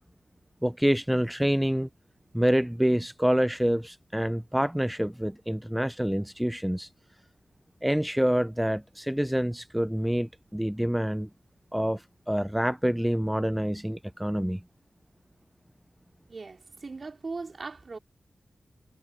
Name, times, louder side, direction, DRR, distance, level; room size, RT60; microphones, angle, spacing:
voice 1, 0.6-1.9 2.3-6.9 7.8-11.3 11.7-14.6, equal, 5° right, 0.3 m, -27 dB
voice 2, 16.3-18.0, right 4 dB, 50° right, 2.7 m, -39 dB
wide cardioid pair, 85°, 0 cm